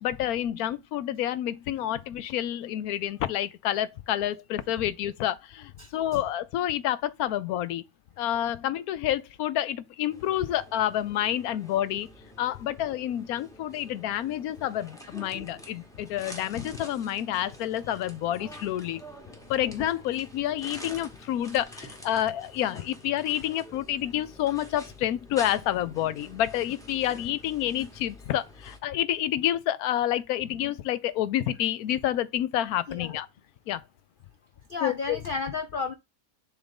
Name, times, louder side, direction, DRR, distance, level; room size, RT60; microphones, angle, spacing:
voice 1, 0.0-7.8 8.2-12.1 12.4-19.0 19.5-33.3 33.7-33.8 34.8-35.2, left 12 dB, 85° left, 1.1 m, -29 dB
voice 2, 5.8-6.2 16.6-16.7 32.9-33.2 34.7-35.9, left 4 dB, 65° left, 0.5 m, -33 dB
sound 1, 10.1-28.8, left 1 dB, 5° left, 1.0 m, -47 dB
7.0 x 2.6 x 5.1 m
omnidirectional pair, 1.5 m